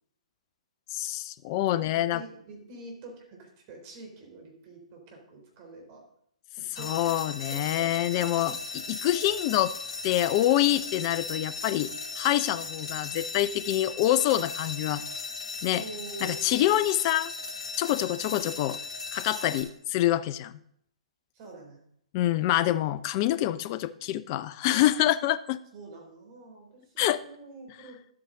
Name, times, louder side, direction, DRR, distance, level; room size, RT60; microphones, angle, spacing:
voice 1, 0.9-2.2 6.8-8.5 8.9-9.7 10.0-11.9 12.2-15.0 15.6-15.8 16.2-17.3 17.8-18.8 19.1-20.5 22.1-25.6 27.0-27.2, left 14 dB, 35° left, 16 dB, 0.5 m, -26 dB
voice 2, 1.6-6.0 6.8-6.9 7.5-7.9 8.4-8.5 15.7-16.8 21.3-21.8 25.7-28.0, right 3 dB, 35° right, 0 dB, 3.5 m, -46 dB
sound 1, 6.8-19.6, left 4 dB, 55° left, 2.4 m, -37 dB
11.5 x 8.6 x 3.8 m, 0.70 s
figure-of-eight pair, 120°, 4 cm